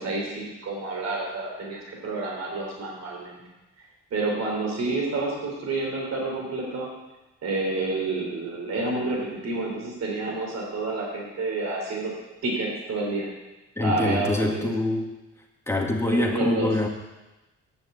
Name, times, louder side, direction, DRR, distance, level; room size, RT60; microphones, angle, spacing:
voice 1, 0.0-3.4 3.8-6.9 7.4-12.1 12.4-13.3 13.8-14.7 16.1-16.7, right 3 dB, 60° right, -2 dB, 3.5 m, -29 dB
voice 2, 13.8-15.1 15.7-16.9, left 2 dB, 10° left, 0 dB, 2.0 m, -25 dB
9.5 x 6.3 x 8.1 m, 1.1 s
cardioid pair, 90°, 30 cm